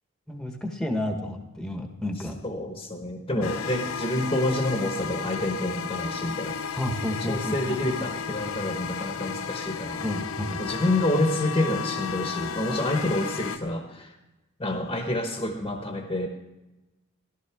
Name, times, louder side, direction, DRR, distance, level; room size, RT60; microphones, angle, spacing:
voice 1, 0.3-2.3 3.3-3.5 6.7-7.8 10.0-10.6, left 1 dB, 5° left, 3 dB, 1.2 m, -31 dB
voice 2, 2.2-6.8 7.2-10.1 10.6-14.1 14.6-16.3, left 1 dB, 25° left, 3 dB, 1.1 m, -28 dB
sound 1, 3.4-13.6, left 6 dB, 75° left, 0.6 m, -33 dB
14.5 x 12.5 x 3.5 m, 1.0 s
head